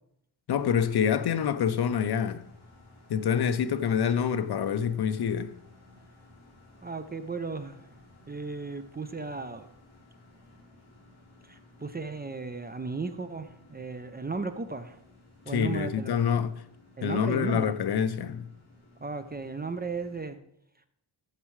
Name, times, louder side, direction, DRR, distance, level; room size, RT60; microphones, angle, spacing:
voice 1, 0.5-2.5 3.1-5.6 15.5-16.6 17.0-18.4, left 7 dB, 55° left, 0.6 m, -26 dB
sound 1, 0.5-20.2, left 2 dB, 35° left, 3.5 m, -56 dB
voice 2, 6.8-7.8 8.3-9.7 11.5-15.0 15.5-16.3 17.0-17.7 19.0-20.4, right 4 dB, 20° right, 0.4 m, -35 dB
14.5 x 7.3 x 3.2 m
wide cardioid pair, 140°, 46 cm